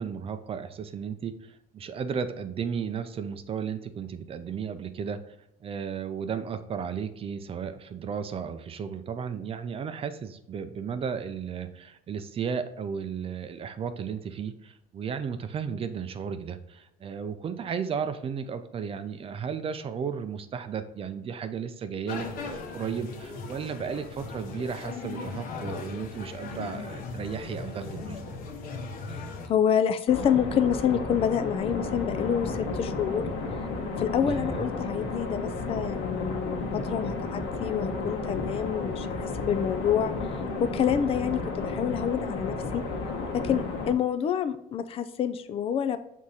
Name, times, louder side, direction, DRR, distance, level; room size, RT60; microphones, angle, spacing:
voice 1, 0.0-5.3 5.6-28.2 34.3-34.7, right 7 dB, 35° right, 10 dB, 0.5 m, -34 dB
sound 1, 22.1-29.5, left 4 dB, 60° left, 1.1 m, -38 dB
voice 2, 29.1-33.3 34.0-40.1 40.6-42.8 43.3-46.0, left 8 dB, 35° left, 10 dB, 0.4 m, -27 dB
sound 2, 30.1-43.9, left 3 dB, 85° left, 1.3 m, -32 dB
6.5 x 3.6 x 4.1 m, 0.82 s
cardioid pair, 135°, 17 cm